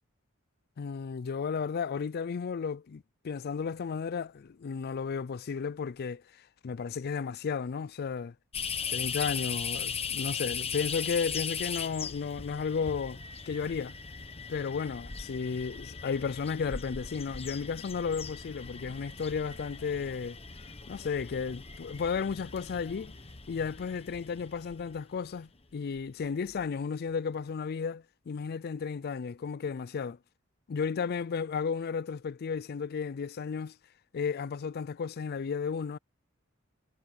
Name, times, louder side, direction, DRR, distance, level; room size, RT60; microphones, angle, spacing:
voice 1, 0.8-8.3 8.9-13.2 13.5-13.9 14.5-20.4 20.9-23.1 23.5-30.2 30.7-33.8 34.1-36.0, left 5 dB, 50° left, 0.4 m, -33 dB
sound 1, 8.5-25.4 26.0-26.1 26.5-26.6, left 6 dB, 30° left, 1.3 m, -39 dB
head